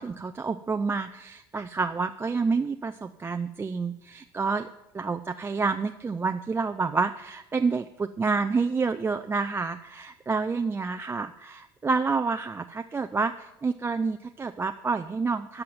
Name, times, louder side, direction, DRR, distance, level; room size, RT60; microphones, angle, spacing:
voice 1, 0.0-4.7 4.9-15.6, right 4 dB, 20° right, 7 dB, 0.5 m, -28 dB
13.0 x 5.7 x 7.7 m, 0.90 s
hypercardioid pair, 75°, 12 cm